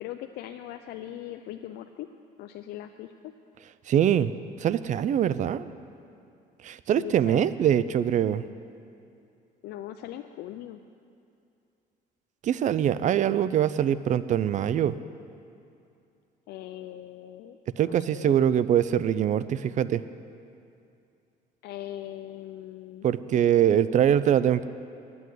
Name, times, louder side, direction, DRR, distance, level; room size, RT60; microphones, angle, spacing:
voice 1, 0.0-2.1 2.4-3.3 7.0-7.4 9.6-10.8 16.5-18.4 21.6-23.1, left 13 dB, 75° left, 7 dB, 0.4 m, -40 dB
voice 2, 3.9-4.3 4.6-5.7 6.6-8.4 12.4-15.0 17.8-20.0 23.0-24.7, right 10 dB, 45° right, 16 dB, 0.4 m, -23 dB
9.3 x 8.0 x 9.2 m, 2.6 s
cardioid pair, 110°, 17 cm